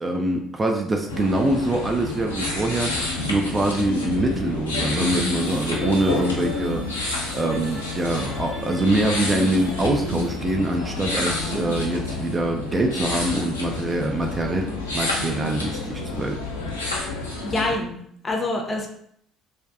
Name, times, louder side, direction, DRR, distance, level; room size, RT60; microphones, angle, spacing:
voice 1, 0.0-7.1 7.3-16.4, right 2 dB, 25° right, 2 dB, 0.3 m, -24 dB
sound 1, 1.1-17.7, left 2 dB, 80° left, 0.4 m, -29 dB
sound 2, 4.9-11.4, right 2 dB, 60° right, 0.8 m, -44 dB
voice 2, 17.4-18.9, left 2 dB, 30° left, 2 dB, 0.5 m, -27 dB
2.5 x 2.2 x 2.4 m, 0.67 s
figure-of-eight pair, 55°, 0 cm